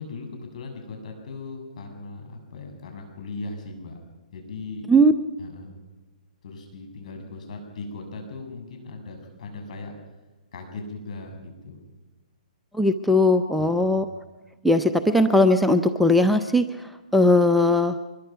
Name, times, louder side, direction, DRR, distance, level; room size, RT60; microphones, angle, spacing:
voice 1, 0.0-4.0 4.3-4.9 5.4-5.8 6.4-9.9 10.5-11.8 13.6-14.0, left 3 dB, 60° left, 4 dB, 6.9 m, -38 dB
voice 2, 12.7-14.1 14.6-18.0, left 1 dB, ahead, 7 dB, 0.7 m, -19 dB
24.0 x 21.5 x 5.8 m, 1.1 s
hypercardioid pair, 145°, 4 cm